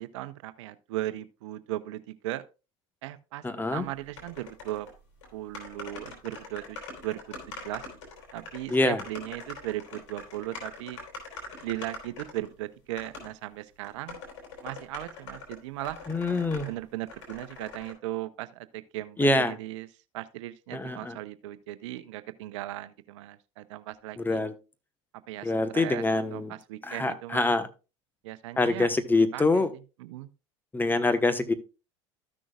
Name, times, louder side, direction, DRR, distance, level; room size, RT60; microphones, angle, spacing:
voice 1, 0.0-2.4 3.0-3.4 3.7-4.9 5.3-6.8 7.0-7.9 8.3-11.0 11.6-14.2 14.6-16.0 16.7-19.9 20.1-24.4 25.3-27.5 28.2-28.9 29.3-29.6 30.0-30.3, right 15 dB, 75° right, 0.7 m, -37 dB
voice 2, 3.4-3.9 8.7-9.0 16.1-16.7 19.2-19.5 20.7-21.2 24.2-24.5 25.4-26.5 26.8-27.7 28.6-29.7 30.7-31.5, left 2 dB, 15° left, 1.1 m, -25 dB
sound 1, 4.2-4.9 5.2-5.3 5.5-12.5 13.0-13.3 13.8-16.7 17.1-17.9, left 3 dB, 75° left, 3.8 m, -43 dB
14.0 x 6.2 x 2.4 m
hypercardioid pair, 90°, 16 cm